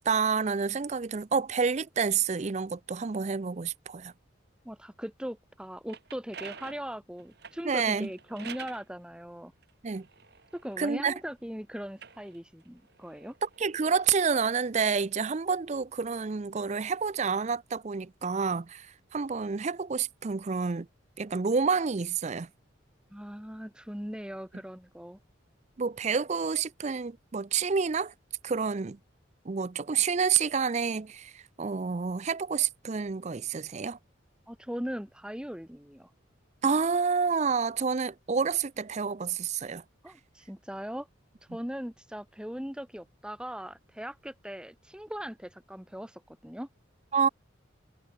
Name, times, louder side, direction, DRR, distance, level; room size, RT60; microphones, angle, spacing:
voice 1, 0.0-4.1 7.6-8.1 9.8-10.1 10.8-11.1 13.4-20.9 21.2-22.5 25.8-28.1 28.4-29.0 29.5-34.0 36.6-39.8 47.1-47.3, right 5 dB, 35° right, 0.5 m, -29 dB
voice 2, 4.6-9.5 10.5-13.4 23.1-25.2 34.5-36.1 40.0-41.1 41.5-46.7, equal, 5° right, 1.4 m, -39 dB
sound 1, 5.6-8.9 9.6-11.3 11.8-14.2, right 7 dB, 55° right, 2.2 m, -48 dB
head